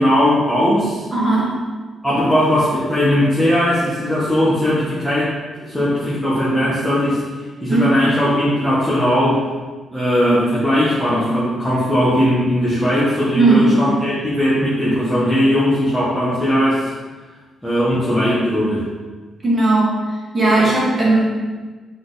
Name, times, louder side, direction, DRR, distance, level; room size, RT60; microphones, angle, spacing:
voice 1, 0.0-1.0 2.0-7.2 7.6-9.5 9.9-16.9 17.6-18.9, equal, ahead, -10 dB, 1.1 m, -18 dB
voice 2, 1.1-1.6 7.7-8.0 13.3-13.8 19.4-20.0 20.3-21.3, right 2 dB, 20° right, -6 dB, 1.8 m, -16 dB
7.6 x 4.0 x 3.9 m, 1.3 s
wide cardioid pair, 180°, 0 cm